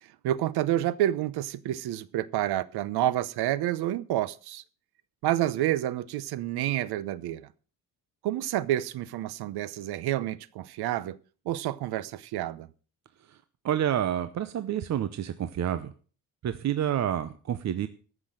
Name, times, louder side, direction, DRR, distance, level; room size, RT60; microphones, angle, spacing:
voice 1, 0.2-4.6 5.2-7.5 8.2-11.2 11.5-12.7, right 13 dB, 90° right, 0.9 m, -29 dB
voice 2, 13.6-15.9 16.4-17.9, right 10 dB, 45° right, 0.8 m, -28 dB
14.0 x 6.2 x 7.5 m
cardioid pair, 155°, 38 cm